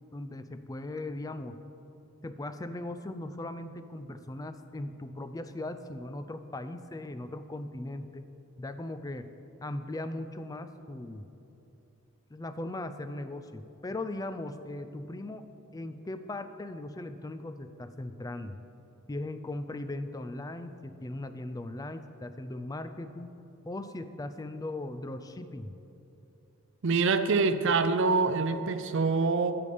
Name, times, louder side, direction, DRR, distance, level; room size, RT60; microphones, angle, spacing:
voice 1, 0.1-1.6 2.2-8.3 8.6-9.3 9.6-11.2 12.3-15.5 15.7-18.6 19.1-23.4 23.6-25.7, left 2 dB, 15° left, 10 dB, 0.3 m, -38 dB
voice 2, 26.8-29.5, right 4 dB, 55° right, 10 dB, 0.5 m, -25 dB
8.2 x 6.8 x 7.0 m, 2.9 s
head